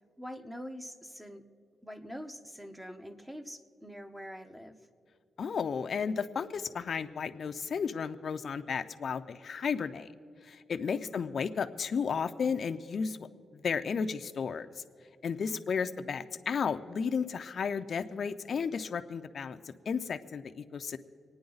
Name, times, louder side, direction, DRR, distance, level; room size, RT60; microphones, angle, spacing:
voice 1, 0.2-1.4 1.8-4.8 10.9-11.4 15.5-16.0, equal, 10° right, 6 dB, 1.0 m, -45 dB
voice 2, 5.4-10.1 10.4-13.3 13.5-14.8 15.2-21.0, left 6 dB, 60° left, 9 dB, 0.5 m, -33 dB
26.5 x 9.5 x 4.0 m, 2.3 s
cardioid pair, 90°, 0 cm